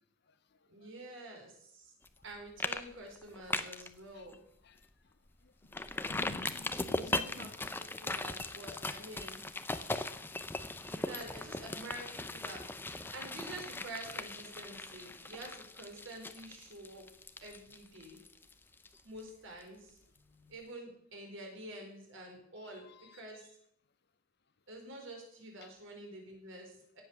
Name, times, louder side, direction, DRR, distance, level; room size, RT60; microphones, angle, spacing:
voice 1, 0.7-1.9 2.2-4.4 7.1-7.7 8.0-9.4 10.9-12.6 13.1-17.0 17.4-18.2 19.0-23.5 24.7-27.0, right 1 dB, 60° right, 1 dB, 4.6 m, -48 dB
sound 1, 2.1-2.3 2.6-2.8 3.1-3.9 4.3-4.4 4.8-4.9 5.7-19.3 19.6-19.7, left 2 dB, 10° left, 0.6 m, -39 dB
voice 2, 5.9-7.6 7.9-8.0 14.5-14.6 22.7-23.2 25.6-25.7, left 2 dB, 50° left, 11 dB, 0.7 m, -49 dB
17.0 x 7.8 x 6.9 m, 0.70 s
head